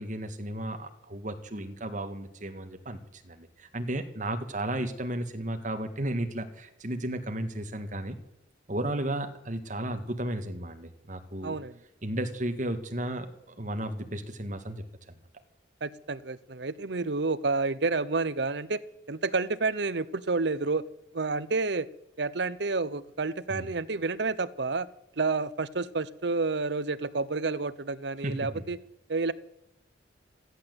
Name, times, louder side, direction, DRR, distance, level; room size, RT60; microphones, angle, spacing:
voice 1, 0.0-8.2 8.7-11.6 12.0-14.8 23.5-23.7 28.2-28.6, right 1 dB, 40° right, 7 dB, 1.7 m, -34 dB
voice 2, 11.4-11.8 15.8-18.8 19.1-20.8 21.1-21.9 22.2-24.9 25.2-28.8 29.1-29.3, right 3 dB, 60° right, 16 dB, 0.8 m, -29 dB
14.5 x 11.5 x 7.9 m, 0.88 s
head